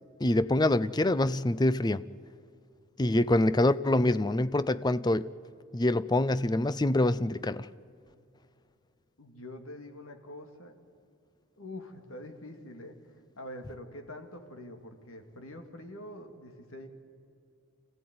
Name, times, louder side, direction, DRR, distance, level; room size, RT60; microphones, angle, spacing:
voice 1, 0.2-2.0 3.0-5.3 5.7-7.7, left 1 dB, 20° left, 0.5 m, -25 dB
voice 2, 3.2-3.6 9.2-10.8 11.6-13.0 13.4-16.9, left 1 dB, 80° left, 2.4 m, -45 dB
26.5 x 16.0 x 9.5 m
head